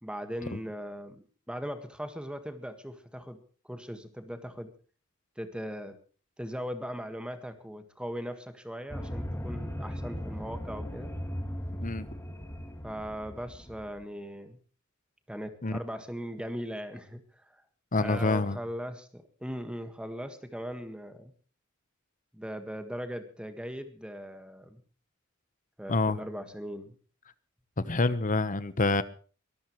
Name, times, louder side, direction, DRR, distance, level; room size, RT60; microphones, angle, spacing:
voice 1, 0.0-4.7 5.4-6.0 6.4-11.1 12.8-14.6 15.3-17.6 18.0-21.3 22.3-24.8 25.8-26.9, equal, 5° right, 1.7 m, -39 dB
sound 1, 8.9-14.0, equal, 15° left, 2.2 m, -38 dB
voice 2, 17.9-18.6 25.9-26.2 27.8-29.0, left 3 dB, 40° left, 1.1 m, -27 dB
23.0 x 13.5 x 3.2 m
head